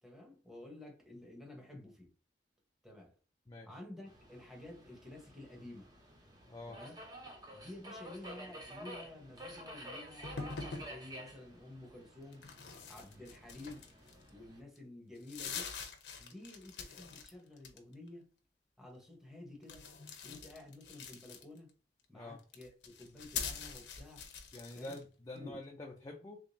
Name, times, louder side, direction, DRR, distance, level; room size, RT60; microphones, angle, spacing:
voice 1, 0.0-2.1 2.8-3.1 3.6-5.9 6.7-7.0 7.5-12.4 12.9-13.8 14.3-15.7 16.2-18.3 18.8-19.9 20.2-21.7 22.1-24.2 24.7-25.0 25.3-25.6, left 1 dB, ahead, 1.1 m, -51 dB
voice 2, 3.5-3.8 6.5-6.8 22.1-22.4 24.5-26.4, left 2 dB, 20° left, 0.4 m, -47 dB
Subway metro underground, 4.1-14.6, equal, 25° right, 0.8 m, -51 dB
sound 1, 10.2-10.9 12.3-14.3 14.8-14.9 15.2-17.3 17.6-18.1 19.6-21.7 22.4-25.0, left 6 dB, 75° left, 0.8 m, -44 dB
3.7 x 3.3 x 2.6 m
head